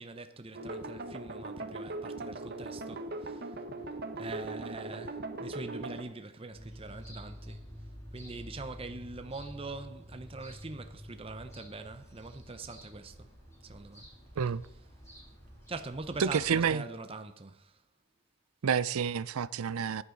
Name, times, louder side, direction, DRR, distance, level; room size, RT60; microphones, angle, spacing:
voice 1, 0.0-3.6 4.2-7.6 8.1-13.3 13.6-14.1 14.7-14.8 15.7-17.8, right 3 dB, 25° right, 0.7 m, -43 dB
sound 1, 0.5-6.0, right 2 dB, 45° right, 1.1 m, -39 dB
sound 2, 6.5-16.7, equal, 15° left, 4.1 m, -49 dB
voice 2, 16.2-16.8 18.6-20.0, right 6 dB, 85° right, 0.5 m, -29 dB
14.5 x 9.9 x 3.9 m
head